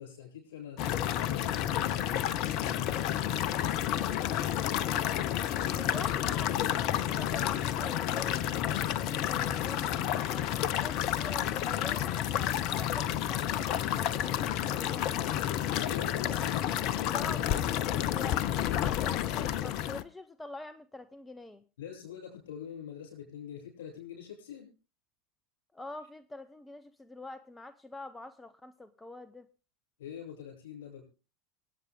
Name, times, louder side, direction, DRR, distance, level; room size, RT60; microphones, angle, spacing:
voice 1, 0.0-3.1 15.7-17.4 21.8-24.7 30.0-31.0, left 8 dB, 65° left, 2 dB, 7.1 m, -44 dB
sound 1, 0.8-20.0, left 11 dB, 50° left, 0.7 m, -30 dB
sound 2, 0.8-8.1, right 3 dB, 10° right, 6.5 m, -56 dB
voice 2, 5.7-15.3 16.4-16.5 16.7-16.8 17.1-21.6 25.7-29.5, left 2 dB, 10° left, 13 dB, 0.8 m, -46 dB
24.5 x 8.4 x 3.7 m, 0.34 s
figure-of-eight pair, 80°, 0 cm